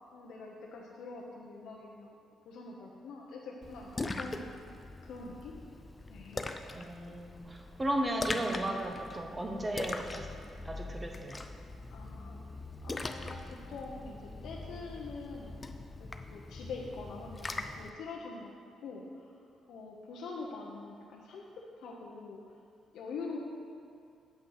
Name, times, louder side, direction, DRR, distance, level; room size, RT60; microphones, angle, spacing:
voice 1, 0.1-2.1 2.4-4.5 5.0-5.5 6.1-6.5 11.9-12.4 12.8-15.5 16.3-19.3 19.7-22.4 22.9-23.4, left 3 dB, 75° left, -2 dB, 0.8 m, -44 dB
Splash splatter, 3.6-17.9, left 2 dB, 25° left, 0.5 m, -42 dB
voice 2, 6.7-10.3 10.6-11.4, right 1 dB, 20° right, 2 dB, 1.1 m, -35 dB
7.8 x 5.7 x 6.3 m, 2.4 s
cardioid pair, 90°, 0 cm